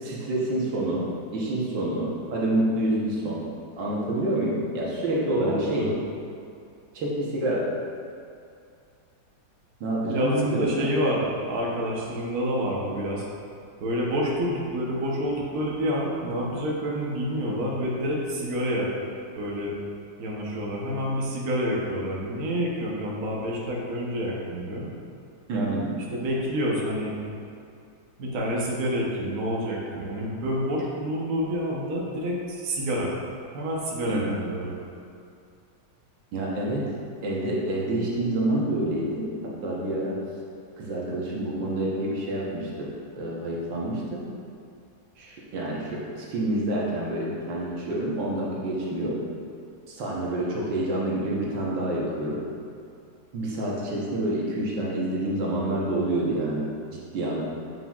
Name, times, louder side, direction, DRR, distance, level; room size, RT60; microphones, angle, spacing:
voice 1, 0.0-3.4 3.8-5.9 7.0-7.7 9.8-10.9 25.5-25.9 34.1-34.4 36.3-36.9 37.2-40.2 40.8-44.2 45.2-49.2 49.9-52.4 53.3-57.4, right 1 dB, 80° right, -5 dB, 1.7 m, -28 dB
voice 2, 5.4-5.9 10.1-13.2 13.8-18.9 19.4-19.8 20.2-24.9 25.5-25.8 26.1-27.2 28.2-33.1 33.5-34.8, equal, 55° right, -4 dB, 1.3 m, -28 dB
7.4 x 5.9 x 2.3 m, 2.5 s
omnidirectional pair, 2.0 m